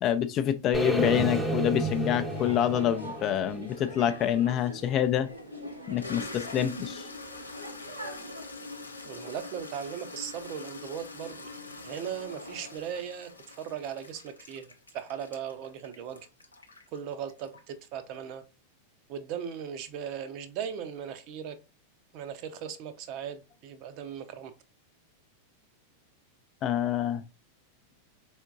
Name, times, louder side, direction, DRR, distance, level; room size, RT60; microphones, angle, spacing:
voice 1, 0.0-5.3 5.9-7.1 26.6-27.2, left 10 dB, 35° left, 0.4 m, -27 dB
sound 1, 0.7-4.8, right 1 dB, 5° right, 0.7 m, -32 dB
sound 2, 1.0-8.4, right 1 dB, 85° right, 0.8 m, -44 dB
Toilet flush, 4.7-4.8 5.4-17.9, left 3 dB, 80° left, 0.6 m, -44 dB
voice 2, 9.0-11.5 11.8-16.3 16.9-18.4 19.1-21.6 22.1-24.5, right 8 dB, 45° right, 0.6 m, -38 dB
4.4 x 3.5 x 2.5 m
figure-of-eight pair, 90°, 0 cm